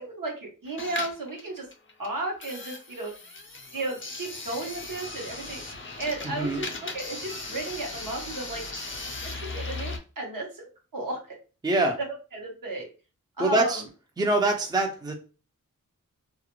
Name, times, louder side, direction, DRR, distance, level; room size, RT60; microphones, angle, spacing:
voice 1, 0.0-1.7 2.0-3.1 3.7-5.6 6.0-8.6 9.2-11.4 12.3-12.9 13.4-13.9, right 2 dB, 70° right, 0 dB, 1.0 m, -34 dB
sound 1, 0.7-10.0, left 3 dB, 35° left, 0.5 m, -38 dB
voice 2, 6.3-6.6 11.6-12.0 13.4-13.8 14.2-15.1, right 2 dB, 10° right, 3 dB, 0.5 m, -24 dB
2.4 x 2.1 x 2.9 m, 0.34 s
wide cardioid pair, 55°, 34 cm